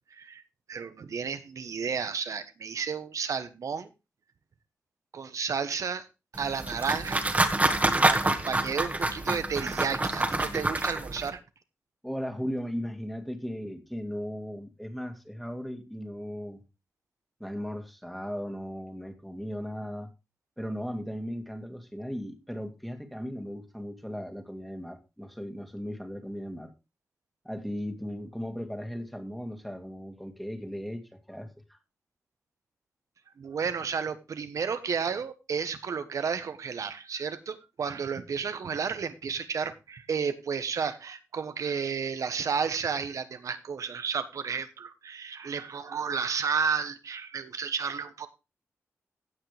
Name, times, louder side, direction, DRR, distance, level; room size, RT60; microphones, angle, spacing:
voice 1, 0.1-0.4 0.7-3.9 5.1-6.1 6.4-7.2 7.7-11.4 33.4-48.3, right 6 dB, 75° right, 1.1 m, -32 dB
sound 1, 6.4-11.3, right 2 dB, 25° right, 1.7 m, -27 dB
voice 2, 12.0-16.6 17.4-20.1 20.6-26.7 27.4-31.8, equal, ahead, 2.1 m, -37 dB
16.5 x 5.9 x 3.3 m
cardioid pair, 60°, 6 cm